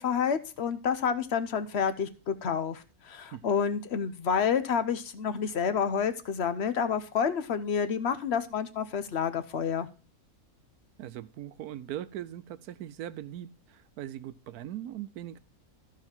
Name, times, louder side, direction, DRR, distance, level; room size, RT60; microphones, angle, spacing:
voice 1, 0.0-9.9, left 7 dB, 55° left, 12 dB, 0.9 m, -29 dB
voice 2, 11.0-15.4, right 12 dB, 80° right, 15 dB, 1.1 m, -40 dB
14.0 x 4.8 x 4.4 m, 0.35 s
omnidirectional pair, 1.6 m